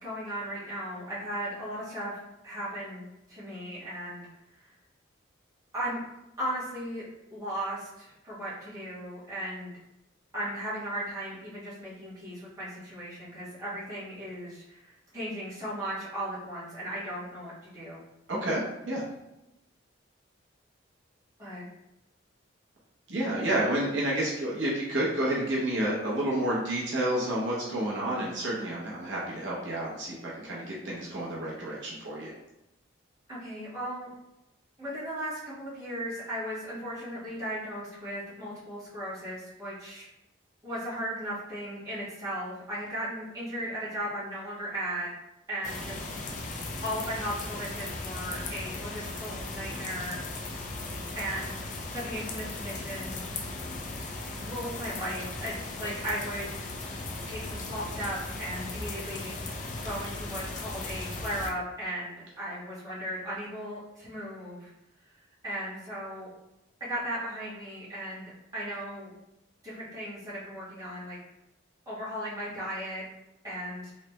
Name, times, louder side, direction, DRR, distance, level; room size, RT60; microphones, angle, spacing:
voice 1, 0.0-2.2 2.4-4.2 4.6-4.7 5.7-6.0 6.4-7.0 7.3-9.7 10.3-18.0 21.4-21.6 33.3-34.1 34.8-40.1 40.6-45.1 45.5-46.0 46.8-50.2 51.1-51.6 51.9-53.2 54.4-56.6 57.3-64.7 65.4-66.3 66.8-68.2 68.5-69.1 69.6-71.2 71.8-73.0 73.4-73.9, equal, 20° right, -10 dB, 1.5 m, -36 dB
voice 2, 18.3-19.0 23.1-32.3, right 1 dB, 65° right, -5 dB, 0.8 m, -30 dB
sound 1, 45.6-61.5, left 2 dB, 40° left, 0.4 m, -37 dB
3.2 x 3.2 x 3.0 m, 0.92 s
head